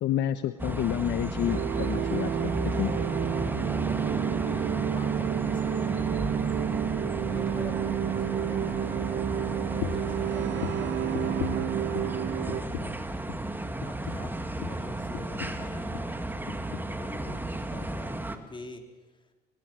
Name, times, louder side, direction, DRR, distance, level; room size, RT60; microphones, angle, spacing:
voice 1, 0.0-3.0, left 11 dB, 65° left, 12 dB, 1.0 m, -29 dB
sound 1, 0.6-18.4, right 2 dB, 10° right, 2.1 m, -34 dB
sound 2, 1.5-12.6, right 10 dB, 65° right, 1.2 m, -30 dB
voice 2, 4.4-6.5 7.2-9.2 9.9-19.2, left 3 dB, 25° left, 4 dB, 3.9 m, -46 dB
sound 3, 9.8-10.2 10.6-12.2 12.5-13.0 13.3-13.5 13.8-16.2 16.5-17.0 17.3-17.5 17.8-17.9, left 9 dB, 80° left, 2.7 m, -38 dB
21.5 x 21.0 x 7.7 m, 1.2 s
supercardioid pair, 80°, 20 cm